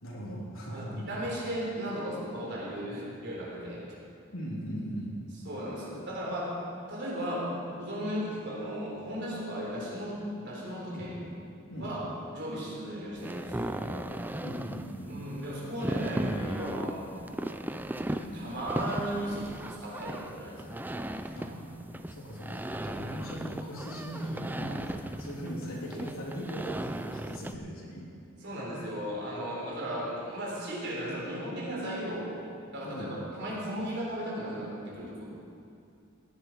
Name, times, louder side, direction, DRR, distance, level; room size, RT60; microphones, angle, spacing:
voice 1, 0.0-1.1 4.3-5.1 10.9-11.1 11.7-11.9 14.4-15.1 21.3-21.5 22.1-28.1 32.8-33.1, equal, 85° left, -4 dB, 3.3 m, -39 dB
voice 2, 0.7-3.8 5.4-6.6 6.9-11.1 11.8-14.1 15.0-17.5 18.0-20.8 21.4-21.6 24.9-25.0 28.4-32.3 32.7-35.3, equal, 60° right, -4 dB, 4.0 m, -36 dB
sound 1, 13.2-27.5, right 1 dB, 10° right, 0.4 m, -37 dB
16.5 x 11.0 x 4.7 m, 2.5 s
head